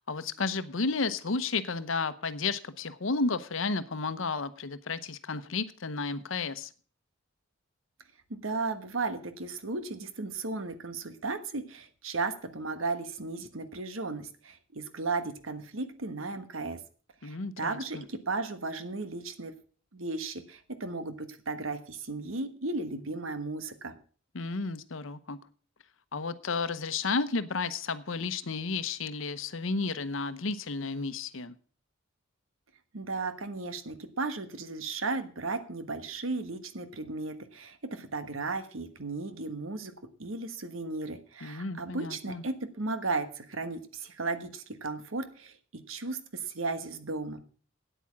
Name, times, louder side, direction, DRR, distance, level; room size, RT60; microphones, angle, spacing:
voice 1, 0.0-6.7 17.2-18.0 24.3-25.4 26.1-31.5 41.4-42.4, left 4 dB, 70° left, 13 dB, 0.9 m, -32 dB
voice 2, 8.3-16.8 17.2-19.5 19.9-23.9 32.9-39.9 40.2-47.4, right 3 dB, 80° right, 10 dB, 1.4 m, -35 dB
9.1 x 8.5 x 7.3 m, 0.42 s
head